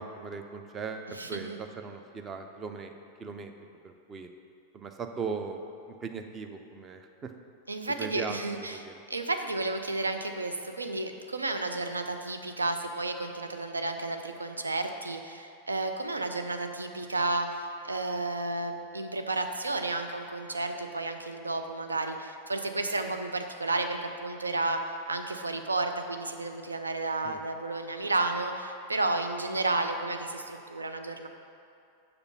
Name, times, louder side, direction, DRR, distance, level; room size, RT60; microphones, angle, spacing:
voice 1, 0.0-2.9 3.2-3.5 3.8-4.3 4.7-5.6 5.9-7.3 8.0-9.0 27.2-27.4, right 5 dB, 25° right, 6 dB, 0.6 m, -38 dB
voice 2, 1.1-1.6 7.7-31.3, right 2 dB, 80° right, 6 dB, 0.5 m, -32 dB
6.9 x 5.4 x 5.7 m, 2.5 s
figure-of-eight pair, 90°, 0 cm